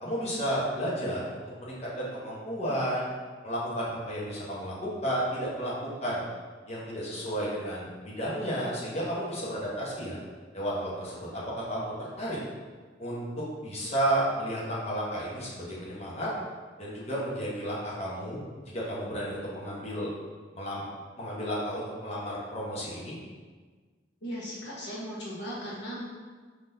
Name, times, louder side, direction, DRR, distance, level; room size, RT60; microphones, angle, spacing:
voice 1, 0.0-3.1 3.4-6.2 6.7-10.2 10.5-12.4 13.0-13.2 13.6-16.3 16.8-18.4 18.7-20.1 20.5-20.8 21.2-23.1, equal, 35° left, -6 dB, 1.0 m, -32 dB
voice 2, 24.2-26.0, equal, 65° left, -5 dB, 0.8 m, -37 dB
5.0 x 3.8 x 2.7 m, 1.5 s
head